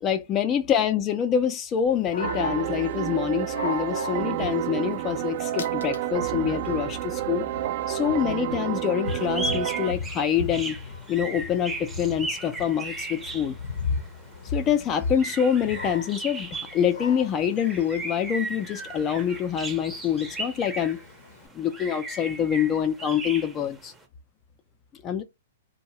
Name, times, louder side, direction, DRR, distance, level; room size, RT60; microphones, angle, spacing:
voice 1, 0.0-7.5 7.9-10.8 11.1-13.6 14.5-21.0 21.5-23.9 25.0-25.2, left 8 dB, 30° left, 0.5 m, -26 dB
Dog, 1.9-21.5, left 5 dB, 75° left, 0.6 m, -39 dB
sound 1, 2.2-9.9, right 13 dB, 50° right, 0.4 m, -29 dB
sound 2, 9.0-24.0, right 2 dB, 10° right, 0.7 m, -37 dB
2.6 x 2.2 x 3.0 m
hypercardioid pair, 125°, 0 cm